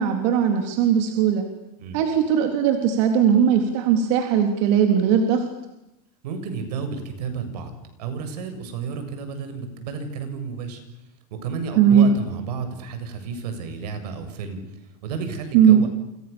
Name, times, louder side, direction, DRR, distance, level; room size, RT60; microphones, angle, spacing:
voice 1, 0.0-1.5 1.9-5.5 11.8-12.1 15.5-15.8, right 8 dB, 50° right, 4 dB, 3.5 m, -18 dB
voice 2, 6.2-10.8 11.3-15.9, right 5 dB, 80° right, 8 dB, 7.3 m, -32 dB
29.5 x 28.0 x 7.1 m, 0.88 s
supercardioid pair, 175°, 20 cm